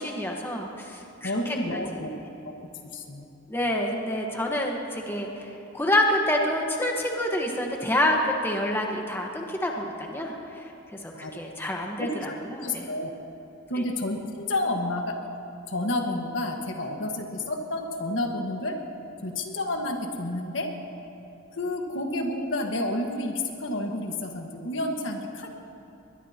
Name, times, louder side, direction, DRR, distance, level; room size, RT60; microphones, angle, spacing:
voice 1, 0.0-2.0 3.5-5.4 5.7-10.3 11.0-12.9, left 1 dB, 10° left, 0 dB, 1.3 m, -27 dB
voice 2, 1.2-2.5 2.9-3.2 11.1-11.6 12.0-13.1 13.7-15.2 15.7-18.8 19.2-20.7 21.5-25.5, left 1 dB, 70° left, 3 dB, 1.6 m, -30 dB
22.0 x 21.5 x 2.9 m, 3.0 s
head